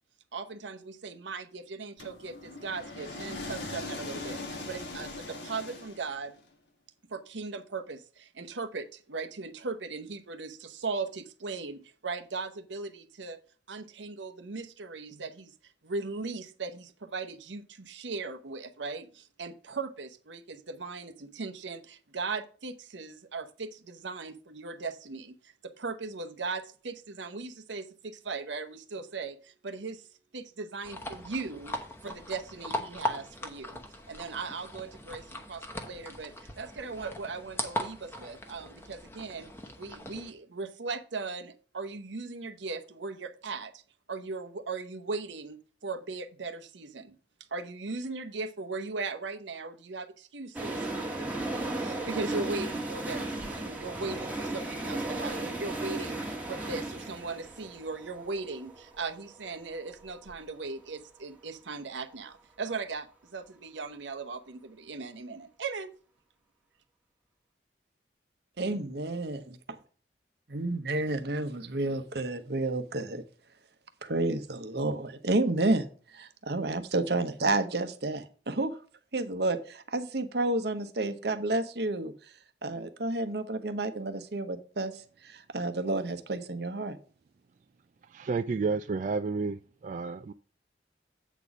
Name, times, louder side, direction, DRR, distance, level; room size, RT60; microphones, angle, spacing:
voice 1, 0.3-6.3 7.1-13.4 13.7-15.5 15.8-30.1 30.3-31.7 32.0-33.8 34.1-39.5 39.8-43.8 44.1-47.2 47.5-51.4 51.7-65.9, right 4 dB, 90° right, 0.9 m, -38 dB
sound 1, 2.0-6.4, left 2 dB, 70° left, 1.5 m, -40 dB
sound 2, 30.8-40.3, left 1 dB, 15° left, 0.9 m, -39 dB
sound 3, 50.5-60.4 60.6-60.7, right 2 dB, 10° right, 1.3 m, -35 dB
voice 2, 68.6-69.8 70.5-73.2 74.0-75.9 76.1-78.7 79.1-82.1 82.6-87.0, right 2 dB, 60° right, 0.9 m, -30 dB
voice 3, 88.1-90.3, right 4 dB, 45° right, 0.3 m, -31 dB
8.2 x 4.1 x 6.0 m
head